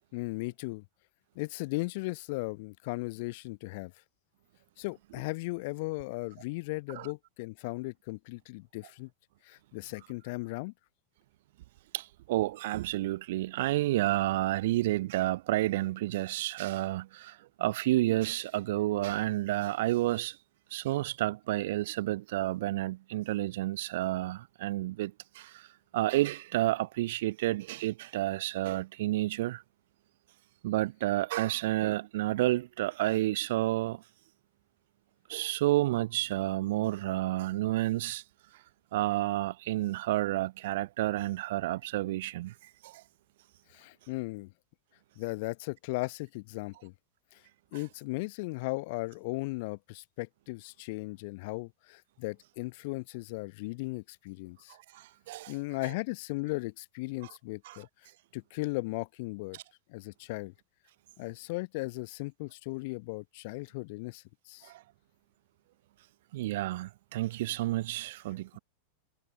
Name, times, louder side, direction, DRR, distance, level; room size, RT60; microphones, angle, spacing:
voice 1, 0.1-0.8 1.3-3.9 4.8-9.1 9.4-10.7 43.7-44.5 45.2-46.9 47.3-47.4 47.7-54.8 55.5-57.9 58.3-59.6 59.9-60.5 61.2-64.7, left 25 dB, 50° left, 1.1 m, -37 dB
voice 2, 11.9-20.4 20.7-25.7 25.9-29.6 30.6-34.0 35.3-38.2 38.9-42.5 42.8-43.0 54.7-55.5 55.8-55.9 57.2-57.3 57.7-57.8 64.6-64.8 66.3-68.6, right 16 dB, 55° right, 0.3 m, -30 dB
figure-of-eight pair, 90°, 0 cm